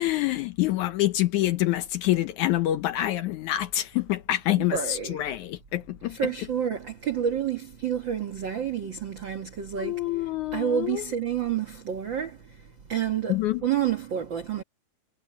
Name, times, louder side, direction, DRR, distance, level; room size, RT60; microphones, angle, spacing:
voice 1, 0.0-6.2 9.8-11.0 13.3-13.6, left 14 dB, 75° left, 1.9 m, -26 dB
voice 2, 4.6-5.3 6.1-14.6, right 9 dB, 55° right, 1.3 m, -29 dB
omnidirectional pair, 4.1 m